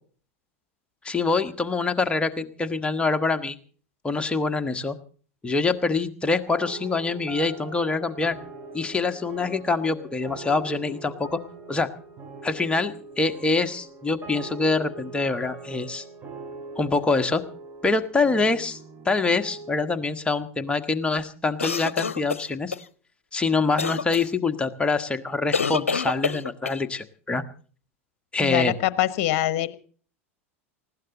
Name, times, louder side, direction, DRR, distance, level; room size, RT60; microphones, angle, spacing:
voice 1, 1.0-3.6 4.0-4.9 5.4-8.4 8.7-11.4 11.7-11.9 12.4-16.0 16.8-17.4 17.8-18.8 19.0-22.7 23.3-27.4 28.3-28.7, left 3 dB, 15° left, 7 dB, 1.4 m, -25 dB
sound 1, 6.5-19.8, right 3 dB, 25° right, 5.2 m, -42 dB
sound 2, 21.6-22.8 23.8-24.3 25.5-26.8, left 5 dB, 85° left, 0.6 m, -27 dB
voice 2, 28.4-29.7, left 13 dB, 55° left, 16 dB, 1.1 m, -24 dB
19.5 x 16.0 x 3.9 m, 0.42 s
hypercardioid pair, 85°, 7 cm